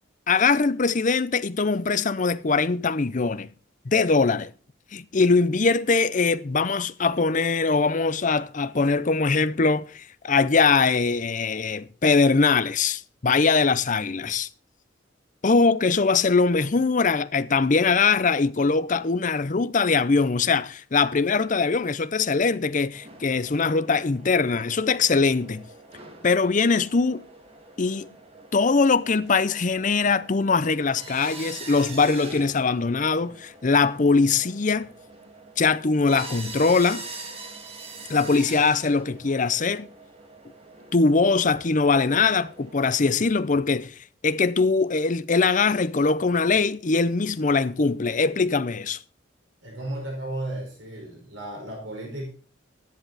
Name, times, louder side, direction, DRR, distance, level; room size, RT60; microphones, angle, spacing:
voice 1, 0.3-3.5 3.8-4.5 4.9-14.5 15.4-25.7 26.2-27.2 27.8-28.1 28.5-34.9 35.6-37.1 38.1-39.9 40.9-43.9 44.2-49.0, left 4 dB, 40° left, 0.6 m, -22 dB
sound 1, 22.9-42.7, right 3 dB, 30° right, 2.1 m, -44 dB
voice 2, 49.6-52.2, right 1 dB, 75° right, 5.0 m, -34 dB
12.5 x 10.5 x 4.0 m
head